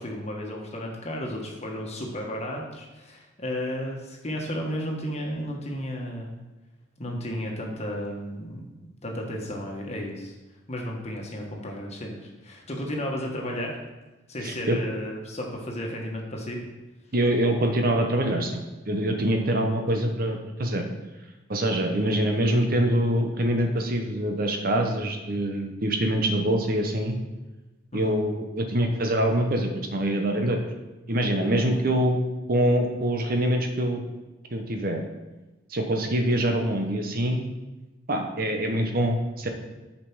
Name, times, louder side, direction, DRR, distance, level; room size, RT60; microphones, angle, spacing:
voice 1, 0.0-6.4 7.0-10.3 10.7-13.7 14.3-16.6 19.3-19.4 27.9-28.2, equal, 35° left, 0 dB, 1.4 m, -33 dB
voice 2, 14.4-14.8 17.1-18.6 18.8-20.8 21.5-27.2 27.9-30.6 31.1-32.2 32.5-34.0 34.5-35.0 35.7-37.4 38.1-39.5, right 1 dB, 50° right, 4 dB, 0.9 m, -24 dB
6.8 x 5.3 x 6.1 m, 1.1 s
head